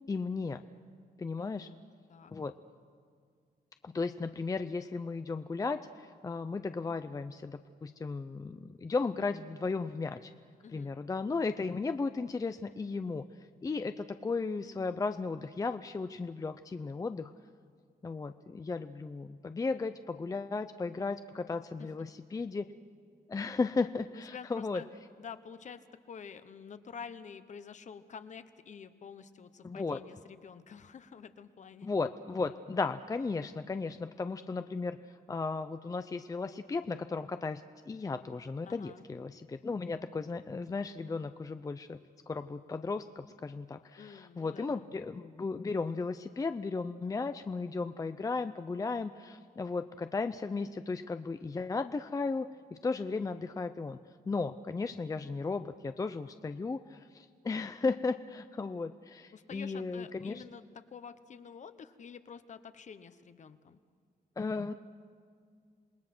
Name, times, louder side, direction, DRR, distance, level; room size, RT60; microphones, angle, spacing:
voice 1, 0.1-0.6 1.2-1.7 2.3-2.5 3.8-10.3 10.7-13.2 13.6-17.3 18.0-22.6 23.3-24.8 29.6-30.0 31.8-42.0 42.3-54.0 54.3-60.4 64.4-64.7, left 4 dB, 20° left, 9 dB, 0.5 m, -35 dB
voice 2, 1.4-1.8 2.1-2.3 10.6-10.9 21.8-21.9 24.3-24.9 25.2-31.9 38.6-39.0 44.0-44.9 59.3-60.6 60.9-63.8, left 6 dB, 50° left, 11 dB, 1.1 m, -48 dB
27.5 x 19.5 x 6.1 m, 2.2 s
cardioid pair, 130°, 16 cm